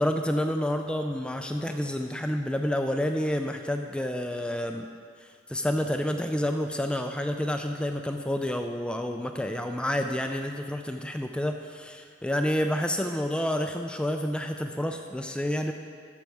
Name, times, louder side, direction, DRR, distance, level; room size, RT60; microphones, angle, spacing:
voice 1, 0.0-4.9 5.2-15.7, left 1 dB, 5° left, 5 dB, 0.4 m, -29 dB
13.0 x 6.7 x 4.7 m, 2.2 s
head